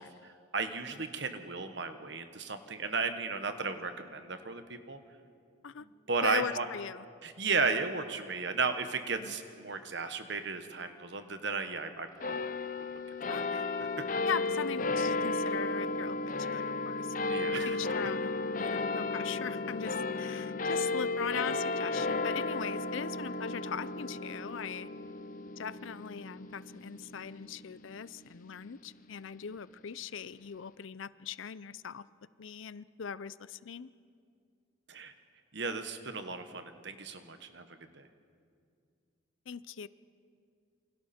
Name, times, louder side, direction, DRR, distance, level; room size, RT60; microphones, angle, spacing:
voice 1, 0.0-5.0 5.8-6.7 7.2-12.6 13.2-13.9 17.3-17.8 34.9-35.1 35.5-37.6 37.9-38.1, right 4 dB, 55° right, 8 dB, 1.3 m, -35 dB
voice 2, 6.2-7.0 9.2-9.3 13.3-13.6 14.2-24.9 25.6-32.0 32.4-33.9 39.5-39.9, left 7 dB, 70° left, 17 dB, 0.5 m, -40 dB
sound 1, 12.2-28.9, left 3 dB, 40° left, 0.8 m, -34 dB
28.0 x 24.5 x 4.4 m, 2.3 s
head